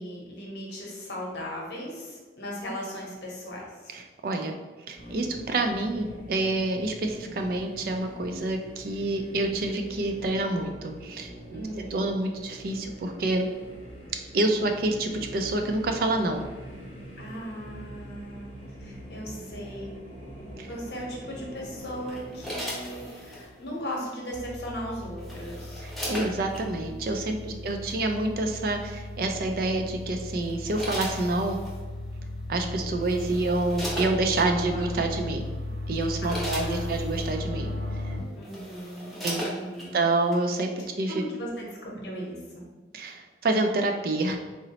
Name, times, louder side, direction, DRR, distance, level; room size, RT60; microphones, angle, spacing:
voice 1, 0.0-3.9 11.5-12.0 17.2-20.0 20.6-25.9 27.3-28.0 34.4-34.9 36.2-37.0 38.3-40.0 40.8-42.6, equal, 70° left, -2 dB, 0.8 m, -38 dB
voice 2, 3.9-4.5 4.9-11.6 11.9-13.5 14.3-16.4 20.6-20.7 25.8-31.6 32.5-35.5 35.9-37.7 38.0-38.1 39.2-39.4 39.9-40.7 41.0-41.2 42.9-44.4, right 2 dB, 55° right, 4 dB, 0.3 m, -27 dB
sound 1, 5.0-23.9, equal, 40° left, 0.8 m, -44 dB
sound 2, 22.1-23.5 24.8-26.6 27.7-27.9 29.6-29.9 30.4-31.8 32.6-32.7 33.0-34.5 35.2-35.4 35.8-37.3 38.0-38.1 38.4-39.9 40.3-40.4, equal, ahead, 0.5 m, -37 dB
sound 3, 24.3-38.2, left 1 dB, 80° right, 0.7 m, -36 dB
3.8 x 2.0 x 2.8 m, 1.3 s
head